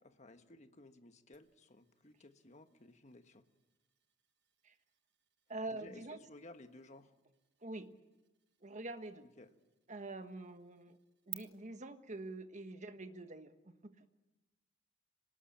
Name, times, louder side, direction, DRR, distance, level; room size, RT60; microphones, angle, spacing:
voice 1, 0.2-3.4 5.7-7.1 9.4-9.5, left 2 dB, 35° left, 8 dB, 1.3 m, -57 dB
sound 1, 1.3-11.3, right 16 dB, 60° right, 1.7 m, -58 dB
voice 2, 5.5-6.2 7.6-7.9 8.6-9.3 9.9-11.0 11.3-14.1, right 2 dB, 40° right, 8 dB, 1.4 m, -46 dB
26.0 x 19.0 x 8.8 m, 1.1 s
head